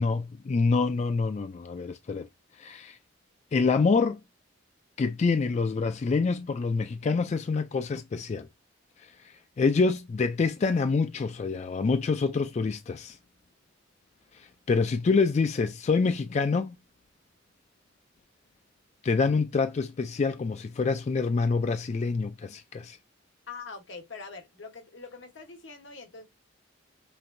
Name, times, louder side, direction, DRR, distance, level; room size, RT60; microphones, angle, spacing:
voice 1, 0.0-2.3 2.6-3.0 3.5-4.2 5.0-8.5 9.0-13.2 14.3-16.8 19.0-23.0, left 4 dB, 35° left, 0.3 m, -26 dB
voice 2, 23.5-26.3, left 4 dB, 70° left, 1.1 m, -43 dB
5.8 x 3.3 x 2.6 m
head